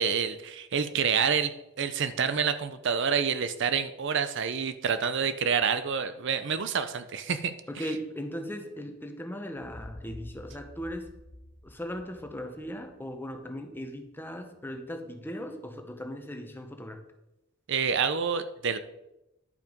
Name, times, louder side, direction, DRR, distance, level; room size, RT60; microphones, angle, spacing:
voice 1, 0.0-7.5 17.7-18.8, right 6 dB, 65° right, 12 dB, 0.6 m, -28 dB
voice 2, 7.7-11.1 11.6-17.0, equal, 10° left, 5 dB, 1.0 m, -38 dB
sound 1, 9.6-13.4, left 1 dB, 30° left, 0.7 m, -49 dB
11.0 x 5.6 x 5.2 m, 0.91 s
head